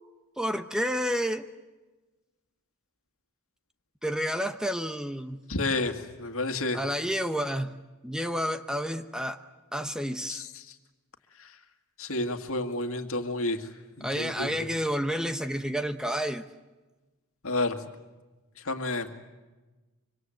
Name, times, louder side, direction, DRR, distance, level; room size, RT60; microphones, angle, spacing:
voice 1, 0.4-1.5 4.0-5.4 6.7-9.4 9.7-10.4 14.0-16.4, equal, 5° right, 9 dB, 0.8 m, -30 dB
voice 2, 5.5-6.8 10.3-10.5 12.0-13.7 14.0-14.5 17.4-17.8 18.6-19.1, left 2 dB, 70° left, 7 dB, 2.1 m, -30 dB
26.0 x 25.0 x 7.8 m, 1.2 s
head